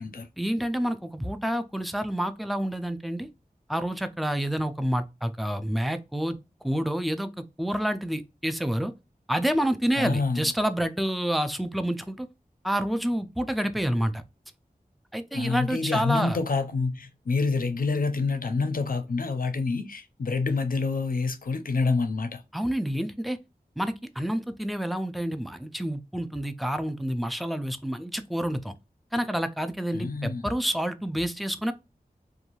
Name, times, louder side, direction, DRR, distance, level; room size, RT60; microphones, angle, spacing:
voice 1, 0.4-3.3 3.7-6.4 6.6-7.3 7.6-8.9 9.3-12.3 12.6-14.2 15.1-16.4 22.5-23.4 23.8-28.7 29.1-31.7, equal, ahead, 0.3 m, -28 dB
voice 2, 10.0-10.4 15.3-22.4 29.9-30.5, left 4 dB, 65° left, 0.5 m, -27 dB
2.6 x 2.3 x 2.9 m
wide cardioid pair, 60°, 16 cm